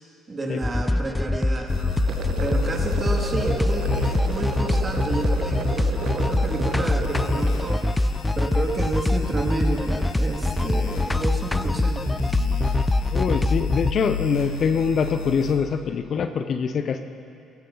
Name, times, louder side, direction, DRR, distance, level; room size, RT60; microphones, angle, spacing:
voice 1, 0.3-12.4 14.2-14.3, right 2 dB, 35° right, 1 dB, 2.4 m, -31 dB
sound 1, 0.6-13.9, left 1 dB, 15° left, 0.3 m, -24 dB
sound 2, 1.7-15.5, left 5 dB, 75° left, 1.8 m, -32 dB
sound 3, 2.0-7.7, right 9 dB, 60° right, 0.5 m, -34 dB
voice 2, 13.1-17.0, left 6 dB, 55° left, 8 dB, 0.8 m, -24 dB
18.0 x 14.5 x 4.0 m, 2.4 s
hypercardioid pair, 55°, 0 cm